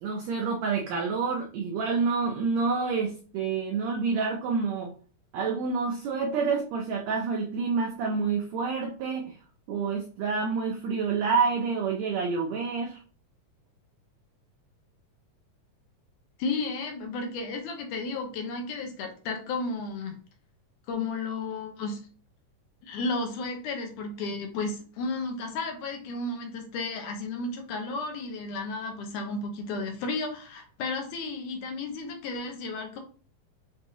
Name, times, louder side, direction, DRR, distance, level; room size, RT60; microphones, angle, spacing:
voice 1, 0.0-4.9 5.3-9.4 9.7-13.0, right 5 dB, 90° right, 1 dB, 1.5 m, -28 dB
voice 2, 16.4-20.1 20.9-22.0 22.8-33.0, left 3 dB, 75° left, 3 dB, 2.2 m, -33 dB
6.4 x 2.6 x 2.6 m, 0.40 s
omnidirectional pair, 3.8 m